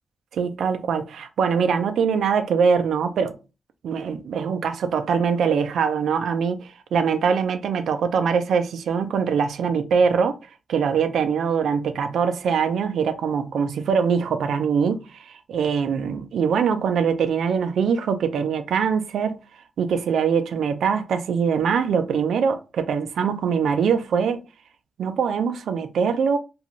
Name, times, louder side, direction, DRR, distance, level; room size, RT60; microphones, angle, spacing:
voice 1, 0.3-3.4 3.8-10.4 10.7-19.4 19.8-24.4 25.0-26.4, right 6 dB, 85° right, 0.4 m, -23 dB
2.5 x 2.3 x 3.0 m
cardioid pair, 80°, 0 cm